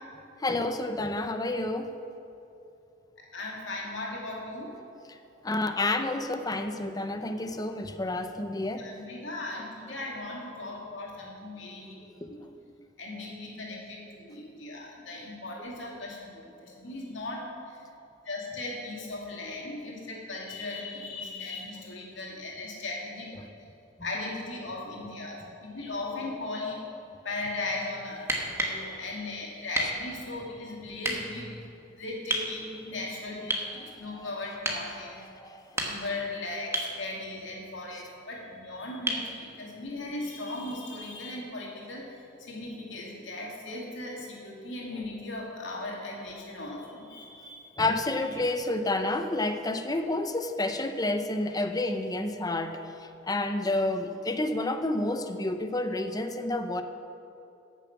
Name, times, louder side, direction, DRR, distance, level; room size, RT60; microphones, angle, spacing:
voice 1, 0.4-1.9 5.1-5.2 5.4-8.9 12.2-12.5 33.8-34.2 35.4-35.6 47.8-56.8, left 2 dB, 20° left, 8 dB, 0.6 m, -30 dB
voice 2, 3.2-4.7 8.6-12.5 13.0-17.8 18.2-23.3 24.0-26.8 27.2-28.3 28.5-31.6 32.0-35.2 35.7-42.0 42.4-47.8, left 2 dB, 80° left, -2 dB, 2.5 m, -38 dB
sound 1, 28.2-28.8 29.7-30.0 31.0-31.2 32.3-32.5 33.5-33.7 34.6-34.9 35.6-36.2 36.7-37.0 39.1-39.3 41.1-41.2, right 1 dB, 15° right, 1.3 m, -30 dB
14.5 x 7.0 x 6.0 m, 2.8 s
head